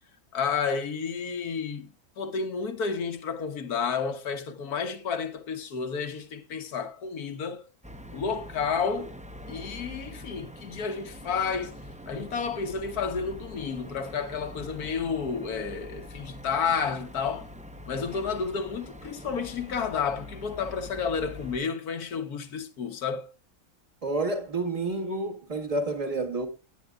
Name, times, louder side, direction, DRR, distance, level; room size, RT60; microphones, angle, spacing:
voice 1, 0.3-1.9 2.2-7.6 8.1-9.1 9.5-11.7 12.1-17.5 17.9-23.3, left 5 dB, 85° left, 1.6 m, -31 dB
sound 1, 7.8-21.6, left 1 dB, 10° right, 0.5 m, -44 dB
voice 2, 24.0-26.5, right 2 dB, 25° right, 1.6 m, -29 dB
18.0 x 9.3 x 2.4 m
omnidirectional pair, 1.6 m